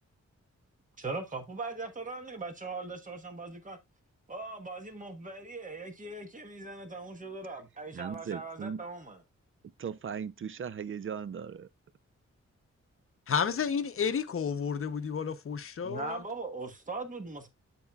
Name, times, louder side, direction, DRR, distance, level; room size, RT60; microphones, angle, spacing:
voice 1, 1.0-3.8 4.3-9.2 15.8-17.5, right 3 dB, 25° right, 1.3 m, -40 dB
voice 2, 7.9-8.8 9.8-11.7, right 7 dB, 45° right, 0.5 m, -38 dB
voice 3, 13.3-16.2, left 6 dB, 50° left, 0.7 m, -31 dB
13.0 x 4.4 x 2.3 m
wide cardioid pair, 165°, 29 cm